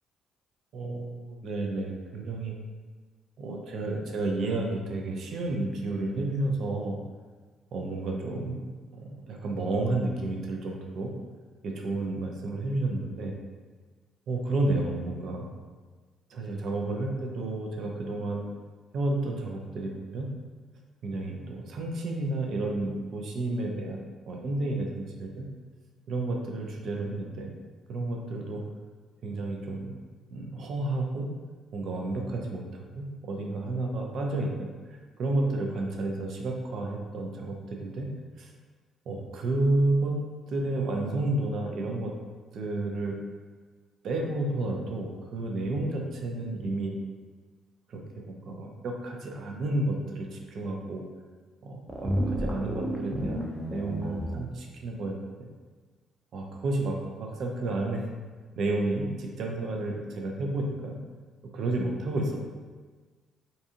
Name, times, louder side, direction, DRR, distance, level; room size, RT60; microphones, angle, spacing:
voice 1, 0.7-2.6 3.4-7.0 7.7-8.6 8.9-11.1 11.6-13.3 14.3-15.5 16.3-18.4 18.9-20.3 21.0-25.5 26.1-27.5 27.9-28.6 29.2-29.9 30.3-31.3 31.7-38.5 39.1-40.2 40.5-42.1 42.5-43.2 44.0-46.9 47.9-48.0 48.3-51.0 51.6-53.4 53.7-55.2 56.3-58.1 58.6-61.0 61.5-62.5, right 2 dB, 65° right, 1 dB, 0.4 m, -31 dB
sound 1, 51.9-54.3, equal, 20° right, 0.6 m, -31 dB
2.6 x 2.4 x 2.6 m, 1.4 s
supercardioid pair, 60°, 0 cm